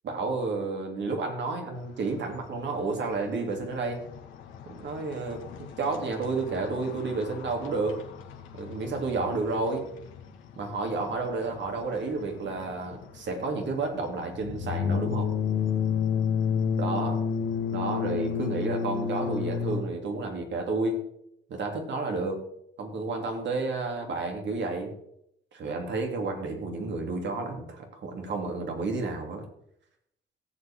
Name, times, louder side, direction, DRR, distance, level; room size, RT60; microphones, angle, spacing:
voice 1, 0.0-4.0 4.7-8.0 8.5-9.9 10.6-15.3 16.8-17.2 17.7-21.0 21.5-22.4 22.8-24.9 25.5-29.4, right 3 dB, 65° right, 2 dB, 3.1 m, -31 dB
sound 1, 1.7-19.8, left 7 dB, 85° left, 1.9 m, -32 dB
17.0 x 7.8 x 3.8 m, 0.73 s
cardioid pair, 90°, 20 cm